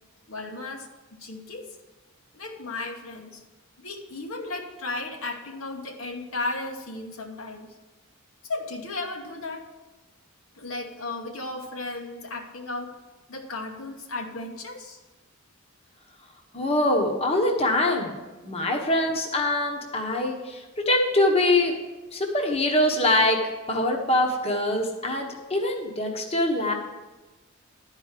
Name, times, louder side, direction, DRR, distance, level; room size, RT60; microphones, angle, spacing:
voice 1, 0.3-1.7 2.3-3.4 3.8-7.7 8.4-9.7 10.5-13.0 13.3-15.0, left 2 dB, 65° left, 2 dB, 1.1 m, -35 dB
voice 2, 16.5-18.1 18.4-21.7 22.1-23.4 23.7-26.7, left 1 dB, 30° left, 2 dB, 1.1 m, -23 dB
11.5 x 4.8 x 7.4 m, 1.2 s
head